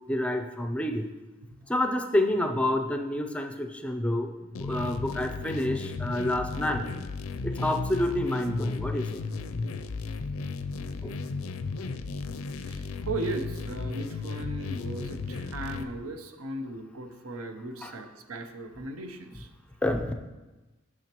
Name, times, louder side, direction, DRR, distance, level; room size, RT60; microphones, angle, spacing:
voice 1, 0.1-1.1 1.7-4.3 4.6-6.8 7.4-9.2 11.0-11.1 17.8-17.9 19.8-20.1, left 1 dB, 5° left, 5 dB, 0.4 m, -28 dB
sound 1, 4.5-15.8, left 4 dB, 85° left, 0.5 m, -34 dB
voice 2, 12.7-19.5, right 2 dB, 85° right, 8 dB, 0.7 m, -37 dB
8.9 x 6.3 x 3.0 m, 1.1 s
head